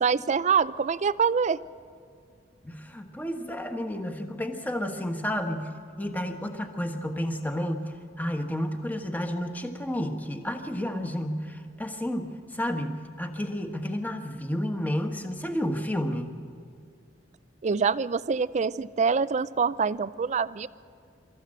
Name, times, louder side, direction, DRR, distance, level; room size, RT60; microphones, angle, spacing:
voice 1, 0.0-1.6 17.6-20.7, right 5 dB, 40° right, 17 dB, 0.4 m, -25 dB
voice 2, 2.6-5.7 6.0-16.3, equal, 10° left, 4 dB, 1.3 m, -31 dB
25.0 x 14.0 x 7.7 m, 2.2 s
head